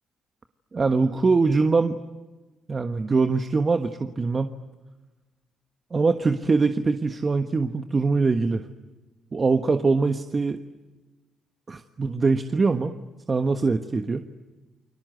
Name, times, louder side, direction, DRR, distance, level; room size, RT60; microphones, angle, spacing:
voice 1, 0.7-2.0 2.7-4.5 5.9-8.6 9.3-10.6 11.7-12.9 13.3-14.3, right 4 dB, 35° right, 8 dB, 1.3 m, -23 dB
30.0 x 23.0 x 7.9 m, 1.2 s
cardioid pair, 90°, 0 cm